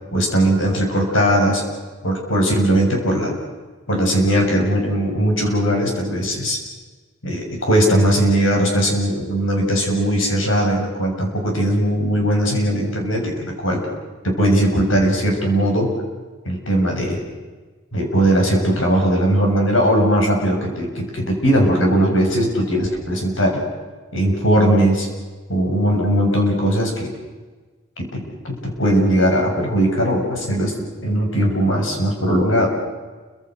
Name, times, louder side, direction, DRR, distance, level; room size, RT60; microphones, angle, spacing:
voice 1, 0.1-1.6 2.0-3.3 3.9-6.6 7.2-13.9 14.2-15.9 16.5-17.2 17.9-23.6 24.1-25.1 25.5-27.1 28.0-30.8 31.0-32.7, right 1 dB, 85° left, 1 dB, 7.1 m, -19 dB
29.5 x 25.0 x 6.4 m, 1.3 s
head